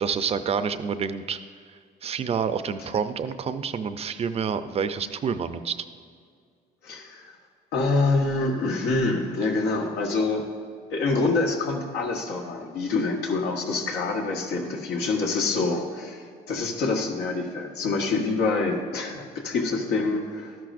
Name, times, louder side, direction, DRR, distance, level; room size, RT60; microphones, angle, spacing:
voice 1, 0.0-1.4 2.0-5.8, right 6 dB, 35° right, 11 dB, 0.5 m, -28 dB
voice 2, 6.8-7.3 7.7-10.5 10.9-20.6, left 3 dB, 85° left, 1 dB, 1.4 m, -26 dB
12.5 x 10.5 x 2.5 m, 2.1 s
cardioid pair, 110°, 17 cm